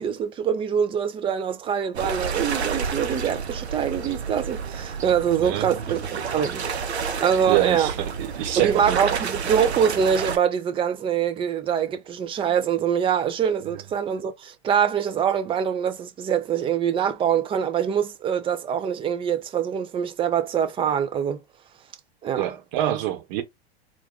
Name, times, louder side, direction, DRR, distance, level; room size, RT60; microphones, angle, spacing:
voice 1, 0.0-6.9 7.2-7.9 8.6-21.4 22.2-22.5, right 8 dB, 15° right, 0.4 m, -24 dB
sound 1, 1.9-10.4, right 6 dB, 85° right, 0.7 m, -30 dB
voice 2, 7.5-9.2 22.3-23.4, right 13 dB, 45° right, 1.0 m, -26 dB
2.4 x 2.2 x 3.7 m
figure-of-eight pair, 95°, 32 cm